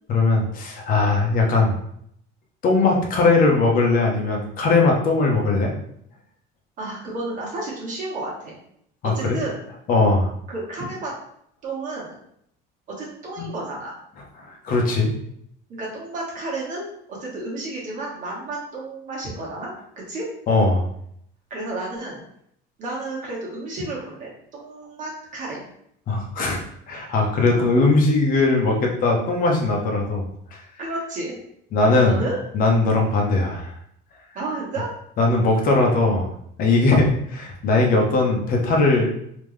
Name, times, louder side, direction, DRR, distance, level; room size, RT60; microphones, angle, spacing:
voice 1, 0.1-1.7 2.6-5.7 9.0-9.4 9.9-10.3 13.4-13.5 14.4-15.1 20.5-20.8 26.1-26.6 26.9-30.2 30.5-30.6 31.7-32.2 32.5-33.7 35.2-36.3 36.6-39.1, left 3 dB, 45° left, 0 dB, 0.9 m, -19 dB
voice 2, 6.8-8.5 9.0-9.6 10.5-11.1 11.6-12.1 12.9-13.9 15.7-20.3 21.5-22.2 22.8-25.6 27.5-27.7 30.8-31.3 32.0-32.4 34.3-34.9, right 2 dB, 40° right, -4 dB, 1.6 m, -31 dB
3.5 x 3.0 x 3.3 m, 0.71 s
cardioid pair, 145°, 20 cm